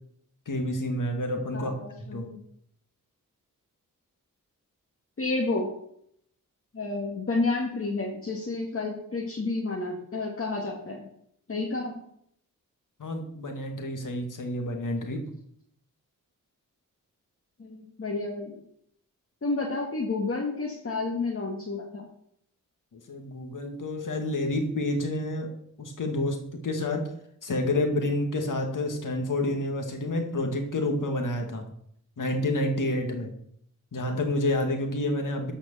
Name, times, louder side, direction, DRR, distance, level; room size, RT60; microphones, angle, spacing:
voice 1, 0.5-1.7 2.1-2.3 13.0-15.2 22.9-27.1 27.4-31.7 32.2-33.3 33.9-35.5, left 1 dB, 70° left, 4 dB, 2.1 m, -29 dB
voice 2, 1.5-2.4 5.2-5.7 6.7-11.1 11.5-11.9 17.6-18.6 19.4-22.1, left 3 dB, 40° left, -2 dB, 1.8 m, -30 dB
13.0 x 5.1 x 6.8 m, 0.70 s
wide cardioid pair, 105°, 33 cm